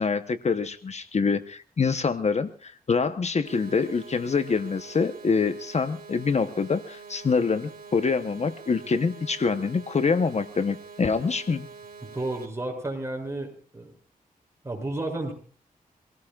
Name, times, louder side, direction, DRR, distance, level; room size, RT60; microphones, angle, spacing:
voice 1, 0.0-11.7, left 5 dB, 50° left, 10 dB, 1.0 m, -25 dB
sound 1, 3.4-12.4, right 5 dB, 80° right, 3.6 m, -45 dB
voice 2, 12.0-13.9 14.6-15.3, right 2 dB, 20° right, 1 dB, 7.2 m, -32 dB
26.5 x 17.5 x 2.4 m, 0.42 s
wide cardioid pair, 95°, 15 cm